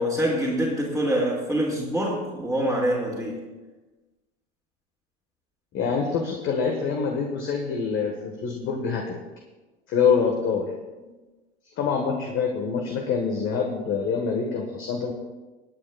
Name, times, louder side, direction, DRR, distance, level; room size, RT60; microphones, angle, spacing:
voice 1, 0.0-3.4, equal, ahead, -7 dB, 2.4 m, -25 dB
voice 2, 5.7-9.2 9.9-10.7 11.8-15.1, left 6 dB, 40° left, 2 dB, 1.6 m, -25 dB
25.0 x 8.7 x 2.4 m, 1.2 s
figure-of-eight pair, 80°, 33 cm